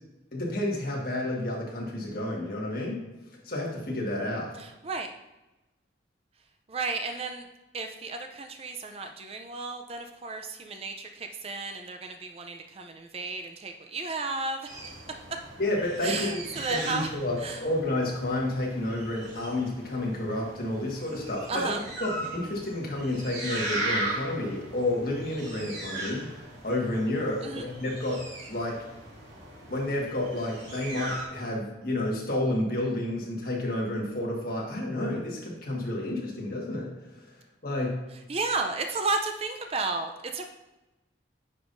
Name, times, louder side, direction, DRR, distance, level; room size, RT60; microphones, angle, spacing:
voice 1, 0.3-3.0 3.4-4.5 15.6-16.4 16.7-26.3 26.6-28.2 28.5-28.8 29.7-36.9 37.6-38.0, left 1 dB, 50° left, -2 dB, 1.6 m, -30 dB
voice 2, 4.6-5.1 6.7-7.4 7.7-14.7 16.0-17.1 17.4-17.6 21.5-21.8 27.4-27.7 38.3-40.5, right 3 dB, 30° right, 5 dB, 0.5 m, -33 dB
sound 1, 14.7-31.3, right 1 dB, 75° right, 2.1 m, -38 dB
9.4 x 5.5 x 2.6 m, 1.0 s
head